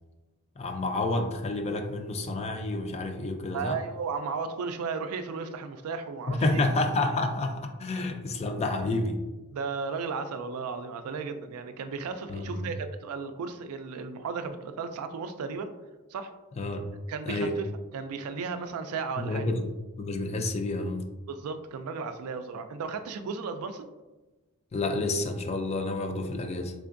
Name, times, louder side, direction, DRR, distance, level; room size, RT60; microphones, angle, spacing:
voice 1, 0.6-3.8 6.3-9.2 12.3-12.7 16.6-16.8 17.3-17.5 19.2-19.7 20.0-21.0 24.7-26.7, left 2 dB, 30° left, 5 dB, 0.4 m, -29 dB
voice 2, 3.5-6.6 9.5-15.7 16.1-16.3 17.1-17.7 17.9-19.5 21.3-23.9, right 5 dB, 85° right, 9 dB, 0.3 m, -35 dB
3.7 x 3.3 x 2.5 m, 1.1 s
head